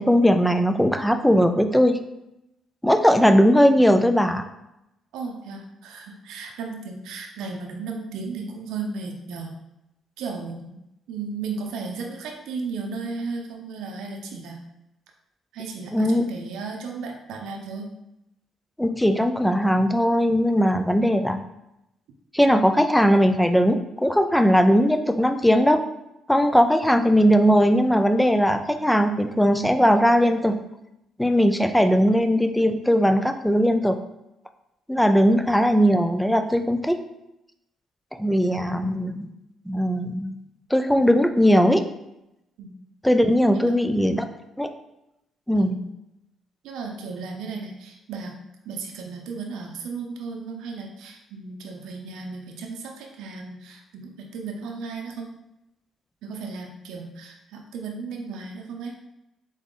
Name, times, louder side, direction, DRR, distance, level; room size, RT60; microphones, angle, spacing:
voice 1, 0.0-2.0 2.8-4.4 15.9-16.2 18.8-21.4 22.3-25.8 26.3-30.6 31.2-34.0 34.9-37.0 38.2-39.3 39.7-40.4 40.7-41.8 43.0-44.2 44.6-44.7 45.5-45.7, equal, 5° left, 8 dB, 0.4 m, -19 dB
voice 2, 5.1-9.6 10.2-10.7 11.1-14.6 15.5-17.9 31.5-31.8 42.6-42.8 43.5-43.8 45.5-45.8 46.6-48.4 48.6-55.3 56.2-58.9, right 4 dB, 85° right, 1 dB, 0.6 m, -35 dB
3.9 x 3.6 x 3.7 m, 0.88 s
cardioid pair, 90°, 0 cm